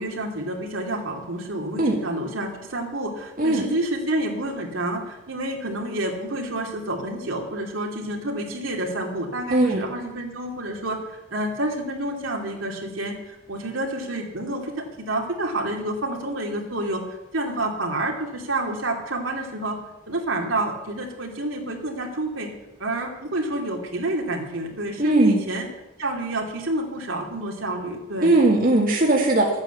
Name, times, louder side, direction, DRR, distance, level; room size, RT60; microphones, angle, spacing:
voice 1, 0.0-19.8 20.1-22.5 22.8-25.7 26.0-28.4, right 1 dB, 75° right, 1 dB, 2.8 m, -29 dB
voice 2, 9.5-9.8 25.0-25.4 28.2-29.6, right 2 dB, 45° right, -1 dB, 1.9 m, -19 dB
13.0 x 9.0 x 8.3 m, 0.98 s
head